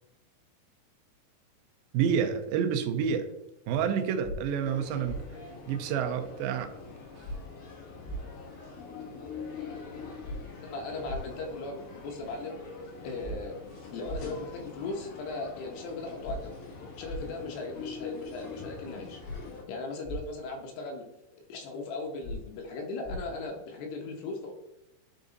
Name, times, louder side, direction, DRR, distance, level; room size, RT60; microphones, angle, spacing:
voice 1, 1.9-3.3 3.7-5.2 5.7-6.7, right 7 dB, 80° right, 6 dB, 2.1 m, -28 dB
sound 1, 4.2-4.4 5.0-5.2 7.2-7.4 8.0-8.2 10.2-10.4 11.0-11.2 13.2-13.4 14.0-14.2 16.2-16.4 17.0-17.2 19.2-19.4 20.0-20.2 22.2-22.4 23.0-23.2, equal, 35° left, 2.1 m, -36 dB
sound 2, 4.6-19.6, left 5 dB, 60° left, 2.7 m, -44 dB
voice 2, 10.6-12.6 13.0-13.6 13.9-16.6 17.0-19.2 19.7-21.1 21.3-24.5, left 3 dB, 80° left, 2 dB, 3.2 m, -38 dB
10.0 x 3.6 x 4.0 m, 0.89 s
omnidirectional pair, 4.8 m